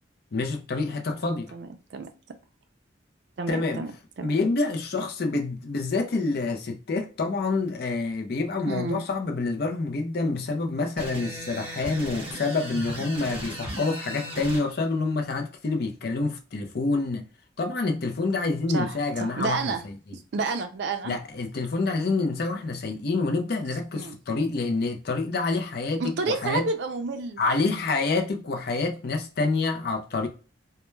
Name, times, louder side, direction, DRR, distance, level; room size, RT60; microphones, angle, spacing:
voice 1, 0.3-1.5 3.5-3.9 4.2-17.2 17.6-20.2 21.0-26.7 27.4-30.3, left 3 dB, 55° left, 0.4 m, -27 dB
voice 2, 1.5-2.1 3.4-3.9 4.2-4.3 8.7-9.0 18.7-19.8 20.1-21.1 23.9-24.2 26.0-27.4, right 4 dB, 60° right, 0.4 m, -30 dB
sound 1, 11.0-14.6, equal, 30° right, 1.0 m, -36 dB
2.2 x 2.1 x 3.1 m
head